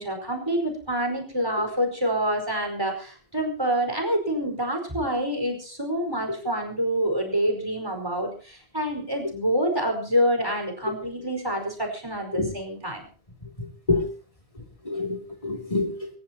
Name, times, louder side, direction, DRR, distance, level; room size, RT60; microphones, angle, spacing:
voice 1, 0.0-13.0, equal, 25° right, 3 dB, 4.9 m, -27 dB
voice 2, 13.6-14.1 14.8-16.1, left 3 dB, 35° left, 1 dB, 3.0 m, -27 dB
27.0 x 14.5 x 2.9 m, 0.38 s
omnidirectional pair, 1.0 m